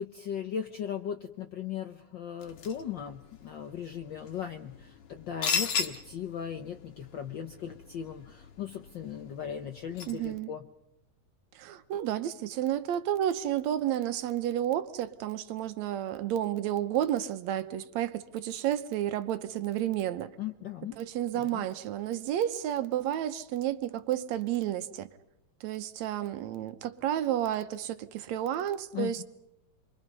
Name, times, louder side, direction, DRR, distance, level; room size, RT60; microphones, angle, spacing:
voice 1, 0.0-10.6 20.4-21.0 21.3-21.7 28.9-29.2, left 8 dB, 85° left, 1.0 m, -38 dB
sound 1, 2.4-10.4, left 6 dB, 55° left, 2.2 m, -38 dB
voice 2, 10.1-10.5 11.6-20.3 21.0-25.1 25.6-29.2, right 11 dB, 70° right, 2.2 m, -31 dB
29.0 x 23.0 x 5.4 m
omnidirectional pair, 3.4 m